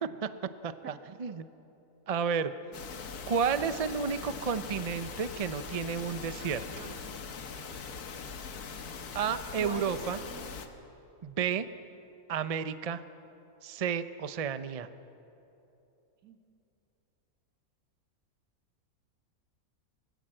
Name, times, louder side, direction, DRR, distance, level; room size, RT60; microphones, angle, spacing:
voice 1, 0.6-1.5 2.1-2.5 3.3-6.8 9.1-10.2 11.2-11.7 12.3-13.0 13.6-14.9, right 6 dB, 40° right, 12 dB, 0.5 m, -32 dB
sound 1, 2.7-10.7, left 5 dB, 85° left, 1.8 m, -41 dB
voice 2, 6.4-6.9 9.6-10.5 16.2-16.4, right 6 dB, 85° right, 5 dB, 2.2 m, -44 dB
23.5 x 19.5 x 7.7 m, 2.9 s
omnidirectional pair, 1.6 m